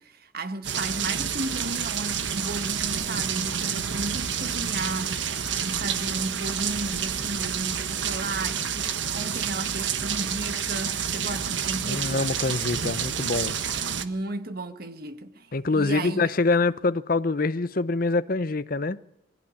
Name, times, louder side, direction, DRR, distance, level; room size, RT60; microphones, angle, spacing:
voice 1, 0.0-12.4 14.0-16.3, right 2 dB, 50° right, 1.5 m, -34 dB
sound 1, 0.6-14.1, right 8 dB, 70° right, 1.3 m, -29 dB
voice 2, 11.8-13.6 15.5-19.0, left 3 dB, 45° left, 0.7 m, -25 dB
21.5 x 16.0 x 10.0 m
head